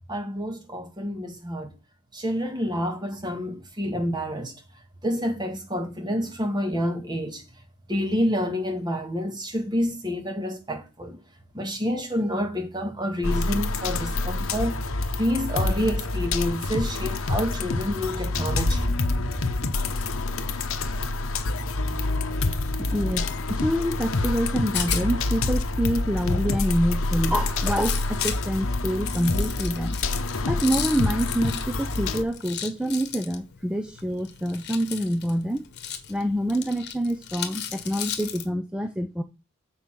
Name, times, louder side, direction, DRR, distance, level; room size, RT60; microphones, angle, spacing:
voice 1, 0.1-1.7 2.1-4.6 5.0-7.4 7.9-11.2 11.5-14.8 15.1-19.3 19.8-19.9, equal, 20° right, 1.6 m, -28 dB
sound 1, 13.2-32.2, left 2 dB, 65° left, 0.9 m, -27 dB
voice 2, 22.8-30.0 30.4-35.6 36.1-39.2, equal, 5° right, 0.5 m, -26 dB
Rattle, 24.3-38.5, left 9 dB, 50° left, 1.3 m, -36 dB
7.2 x 4.6 x 5.9 m
head